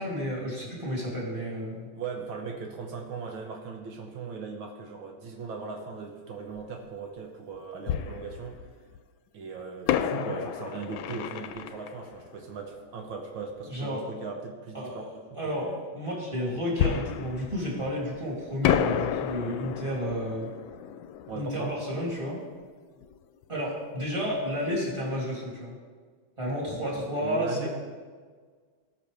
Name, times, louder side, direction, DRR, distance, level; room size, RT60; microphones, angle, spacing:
voice 1, 0.0-1.9 13.7-14.0 14.7-15.0 15.3-20.5 21.3-22.4 23.5-25.8 26.4-27.7, equal, 15° right, -6 dB, 2.7 m, -31 dB
voice 2, 1.9-8.6 9.3-15.8 21.3-21.7 27.2-27.7, right 5 dB, 80° right, 1 dB, 1.8 m, -38 dB
Fireworks, 6.6-6.7 7.9-9.0 9.9-13.3 16.8-18.2 18.6-23.2 23.4-23.5 24.1-24.3, left 10 dB, 80° left, 1.3 m, -31 dB
18.0 x 6.0 x 3.4 m, 1.5 s
omnidirectional pair, 2.2 m